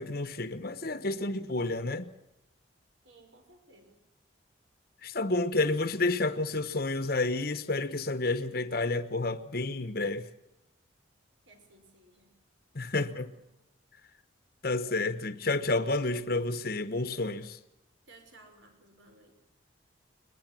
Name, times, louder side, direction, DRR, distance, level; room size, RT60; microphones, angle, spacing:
voice 1, 0.0-2.1 5.0-10.3 12.7-13.3 14.6-17.6, left 2 dB, 50° left, 1.1 m, -30 dB
voice 2, 3.0-4.0 11.5-12.3 13.0-13.4 18.1-19.3, right 2 dB, 75° right, 5.8 m, -58 dB
22.0 x 21.0 x 7.6 m
head